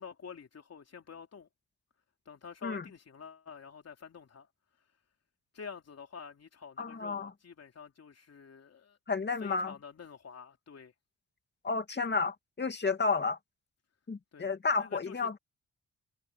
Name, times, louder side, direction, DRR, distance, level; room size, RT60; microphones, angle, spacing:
voice 1, 0.0-1.5 2.2-4.5 5.5-9.0 9.4-10.9 14.3-14.5 14.8-15.3, left 6 dB, 50° left, 3.2 m, -48 dB
voice 2, 6.8-7.3 9.1-9.7 11.6-13.4 14.1-15.4, left 4 dB, 35° left, 2.3 m, -31 dB
cardioid pair, 95°, 32 cm